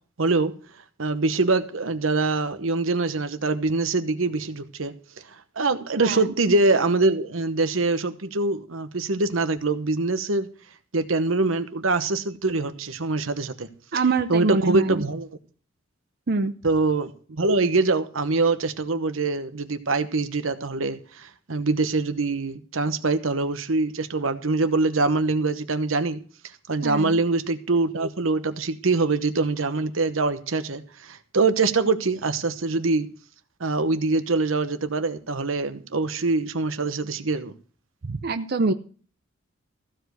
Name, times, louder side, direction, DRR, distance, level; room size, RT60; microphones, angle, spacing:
voice 1, 0.2-0.5 1.0-4.9 5.6-10.5 10.9-13.7 14.3-15.3 16.6-26.2 26.7-33.1 33.6-37.5, right 3 dB, 90° right, 1.0 m, -24 dB
voice 2, 6.0-6.3 13.9-15.0 16.3-16.5 26.8-27.2 38.0-38.7, right 3 dB, 50° right, 0.6 m, -25 dB
15.0 x 5.1 x 8.0 m
head